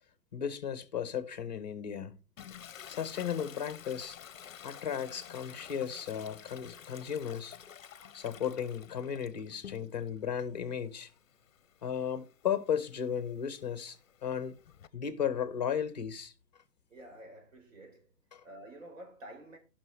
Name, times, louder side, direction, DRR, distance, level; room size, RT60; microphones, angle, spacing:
voice 1, 0.3-2.1 2.9-4.2 4.6-7.5 8.1-11.1 11.8-14.5 14.9-16.3 18.3-18.4, left 8 dB, 25° left, 0.9 m, -35 dB
Toilet flush, 2.4-10.2 10.6-14.9, left 9 dB, 55° left, 0.7 m, -51 dB
voice 2, 16.9-18.1 18.4-19.6, right 1 dB, 50° right, 4.3 m, -50 dB
16.0 x 6.1 x 3.4 m
hypercardioid pair, 170°, 49 cm